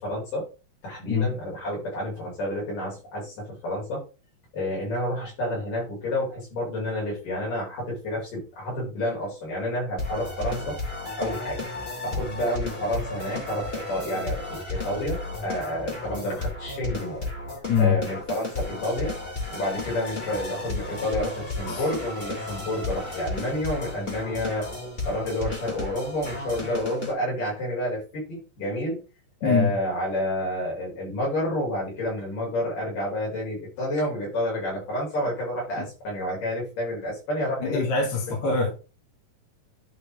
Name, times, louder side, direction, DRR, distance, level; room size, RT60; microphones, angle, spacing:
voice 1, 0.0-0.5 0.8-4.1 4.5-10.8 11.2-11.6 12.0-17.3 17.8-19.2 19.5-24.7 25.0-29.0 29.4-37.9 38.4-38.7, left 1 dB, 85° left, -4 dB, 7.2 m, -29 dB
sound 1, 10.0-27.1, left 2 dB, 20° left, 2.5 m, -33 dB
voice 2, 17.7-18.0 21.7-21.8 29.4-29.7 35.8-35.9 37.6-38.7, left 5 dB, 60° left, -1 dB, 3.4 m, -24 dB
11.5 x 4.6 x 3.6 m, 0.32 s
omnidirectional pair, 3.7 m